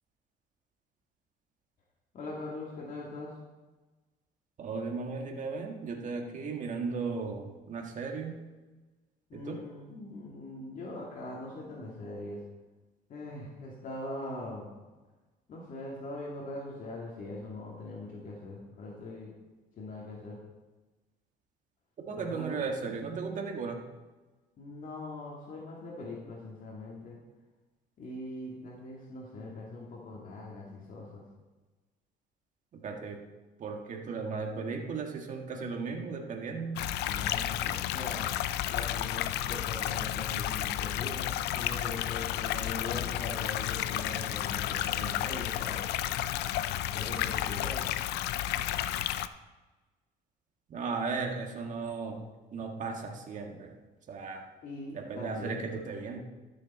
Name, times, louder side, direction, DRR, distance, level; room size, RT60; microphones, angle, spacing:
voice 1, 2.1-3.3 9.3-12.4 13.1-14.8 15.5-19.3 19.8-20.4 22.1-22.6 24.6-27.2 28.0-31.2 37.0-38.3 38.7-41.3 41.5-45.8 46.9-47.8 54.6-55.8, left 2 dB, 50° left, -3 dB, 2.2 m, -41 dB
voice 2, 4.6-8.4 9.3-9.6 22.0-23.8 32.7-33.2 33.6-36.9 50.7-52.2 52.5-53.7 54.1-54.5 54.9-56.2, right 4 dB, 50° right, 2 dB, 1.7 m, -36 dB
sound 1, 36.8-49.3, left 12 dB, 80° left, 0.5 m, -32 dB
12.5 x 6.8 x 4.3 m, 1.2 s
cardioid pair, 110°, 17 cm